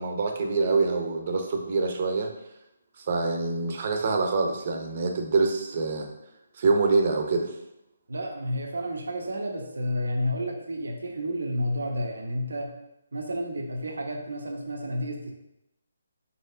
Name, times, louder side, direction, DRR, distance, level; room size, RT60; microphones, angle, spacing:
voice 1, 0.0-2.3 3.0-6.1 6.6-7.5, right 4 dB, 40° right, 3 dB, 0.7 m, -25 dB
voice 2, 8.1-12.7 13.1-15.3, equal, 85° right, 1 dB, 0.9 m, -31 dB
4.6 x 4.2 x 2.7 m, 0.86 s
hypercardioid pair, 165°, 0 cm